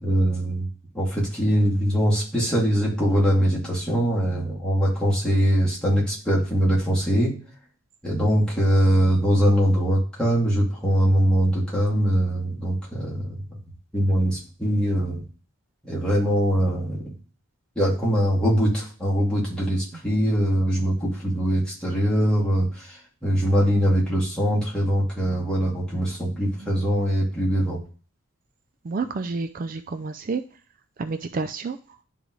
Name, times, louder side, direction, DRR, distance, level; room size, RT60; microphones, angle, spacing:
voice 1, 0.0-0.7 0.9-7.3 8.0-13.4 13.9-15.3 15.8-17.1 17.8-27.8, equal, 5° left, -6 dB, 2.3 m, -22 dB
voice 2, 28.8-30.4 31.0-31.8, right 4 dB, 40° right, 9 dB, 0.3 m, -29 dB
10.5 x 3.8 x 3.1 m, 0.38 s
head